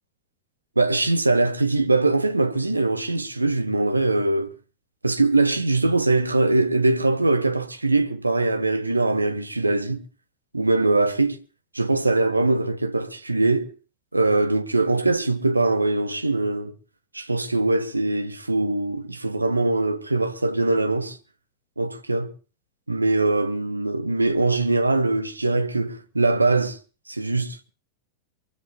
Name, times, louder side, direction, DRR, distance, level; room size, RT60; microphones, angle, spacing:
voice 1, 0.8-4.5 5.0-10.0 10.5-11.4 11.7-13.7 14.1-16.7 17.1-21.2 21.8-22.3 22.9-26.8 27.1-27.7, right 2 dB, 85° right, 1.1 m, -22 dB
24.0 x 23.0 x 2.2 m
figure-of-eight pair, 90°, 0 cm